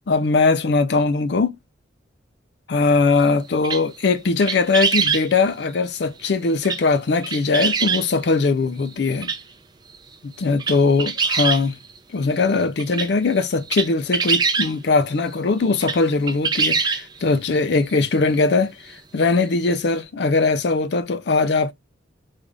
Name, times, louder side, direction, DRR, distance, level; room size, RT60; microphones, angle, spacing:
voice 1, 0.1-1.5 2.7-9.3 10.4-11.8 12.1-21.7, left 3 dB, 60° left, 0.4 m, -20 dB
sound 1, 3.6-4.0 4.4-5.3 6.6-7.0 7.2-8.0 8.9-9.0 9.2-9.4 9.9-10.0 10.4-12.0 12.4-12.5 12.8-14.7 15.7-16.0 16.3-17.2 17.9-18.0 18.3-18.4 19.7-19.8, right 5 dB, 20° right, 0.4 m, -23 dB
3.4 x 2.4 x 3.8 m
head